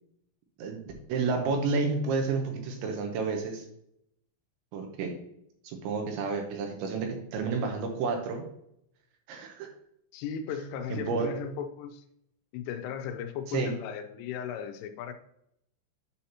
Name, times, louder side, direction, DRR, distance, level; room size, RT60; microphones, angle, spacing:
voice 1, 0.6-3.6 4.7-5.2 5.6-8.4 9.3-9.7 10.9-11.3 13.5-13.7, right 4 dB, 80° right, 3.0 m, -30 dB
voice 2, 10.1-12.0 12.5-15.1, left 7 dB, 85° left, 3.1 m, -36 dB
9.5 x 5.6 x 2.9 m
omnidirectional pair, 5.7 m